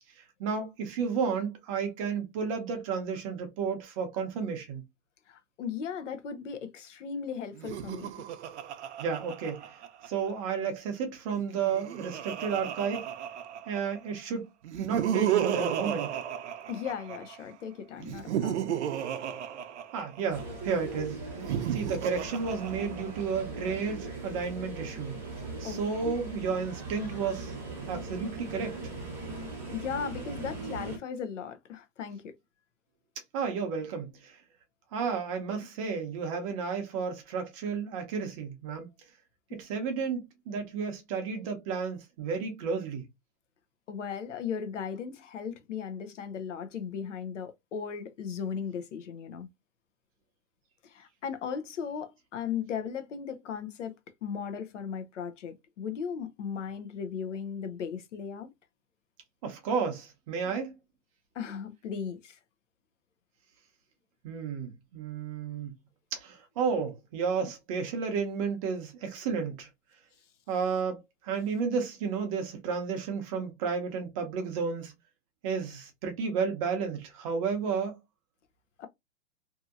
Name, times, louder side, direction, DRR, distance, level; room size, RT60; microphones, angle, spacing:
voice 1, 0.2-4.8 9.0-13.1 13.7-14.5 14.8-16.2 19.9-21.3 21.7-25.2 25.6-27.5 27.9-28.8 33.3-34.4 34.9-38.9 39.5-43.1 59.4-60.7 64.2-65.7 66.1-69.7 70.5-74.9 75.4-78.0, right 5 dB, 30° right, 0.7 m, -32 dB
voice 2, 5.3-8.1 16.7-18.8 25.6-26.2 29.7-32.3 43.9-49.5 50.8-53.9 54.2-58.5 61.3-62.4 78.8-78.9, left 7 dB, 85° left, 0.8 m, -37 dB
Laughter, 7.5-10.3 11.4-14.0 14.6-17.4 18.0-20.4 21.3-23.4, right 10 dB, 70° right, 0.6 m, -33 dB
sound 1, 20.3-31.0, right 3 dB, 5° right, 0.9 m, -40 dB
2.7 x 2.7 x 2.4 m
hypercardioid pair, 160°, 36 cm